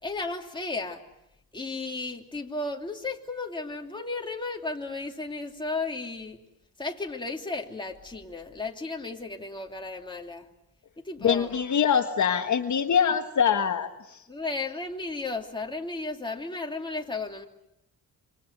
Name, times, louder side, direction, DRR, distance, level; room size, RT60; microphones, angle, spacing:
voice 1, 0.0-1.0 1.5-6.5 6.8-10.5 11.0-11.5 14.3-17.4, left 3 dB, 15° left, 1 dB, 2.9 m, -34 dB
voice 2, 11.2-14.2, left 7 dB, 55° left, 6 dB, 1.4 m, -24 dB
27.0 x 25.5 x 8.2 m, 0.84 s
cardioid pair, 120°, 36 cm